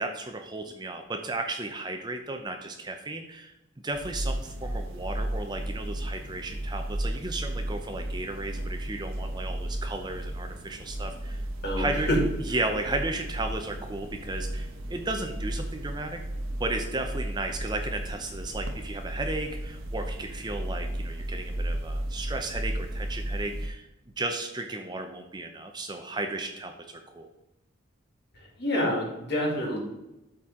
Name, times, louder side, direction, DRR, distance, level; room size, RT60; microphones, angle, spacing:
voice 1, 0.0-3.5 3.8-11.4 11.8-12.1 12.5-16.2 16.6-23.9 24.2-27.3, right 2 dB, 20° right, 5 dB, 0.6 m, -34 dB
sound 1, 3.9-23.7, right 1 dB, 75° right, 1.1 m, -34 dB
voice 2, 11.6-12.2 28.6-29.8, left 1 dB, 50° left, -2 dB, 2.5 m, -27 dB
12.5 x 4.3 x 3.7 m, 0.96 s
head